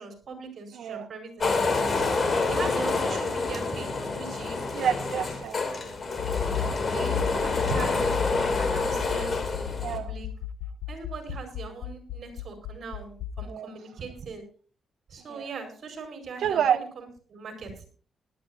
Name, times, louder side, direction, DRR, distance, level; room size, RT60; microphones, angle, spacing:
voice 1, 0.0-2.2 2.5-5.0 6.9-10.3 10.9-14.4 15.1-17.9, right 4 dB, 55° right, 5 dB, 5.0 m, -40 dB
voice 2, 0.7-1.1 4.7-6.2 9.8-10.1 13.5-13.7 15.3-15.5 16.4-16.8, right 9 dB, 75° right, 10 dB, 0.8 m, -28 dB
sound 1, 1.4-10.0, left 3 dB, 40° left, 2.7 m, -28 dB
Accelerating revving vroom, 6.2-13.5, left 8 dB, 85° left, 1.1 m, -34 dB
19.0 x 12.5 x 2.7 m, 0.42 s
cardioid pair, 105°, 0 cm